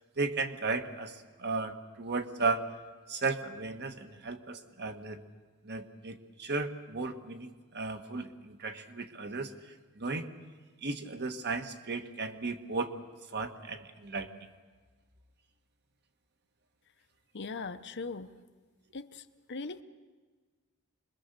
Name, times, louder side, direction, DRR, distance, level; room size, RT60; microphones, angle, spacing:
voice 1, 0.2-2.6 3.1-5.2 5.6-9.5 10.0-10.3 10.8-12.9 13.3-14.3, right 3 dB, 50° right, 7 dB, 1.4 m, -35 dB
voice 2, 17.3-18.3 18.9-19.8, left 4 dB, 55° left, 10 dB, 0.9 m, -40 dB
26.0 x 22.0 x 6.8 m, 1.4 s
head